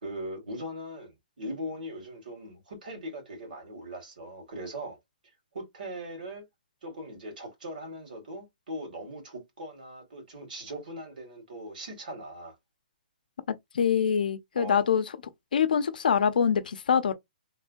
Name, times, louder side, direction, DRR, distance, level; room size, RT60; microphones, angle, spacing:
voice 1, 0.0-5.0 5.5-6.4 6.8-12.5 14.5-14.9, equal, 65° right, 2.0 m, -40 dB
voice 2, 13.7-15.0 15.5-17.1, left 7 dB, 65° left, 0.6 m, -24 dB
3.2 x 2.3 x 2.5 m
hypercardioid pair, 175°, 5 cm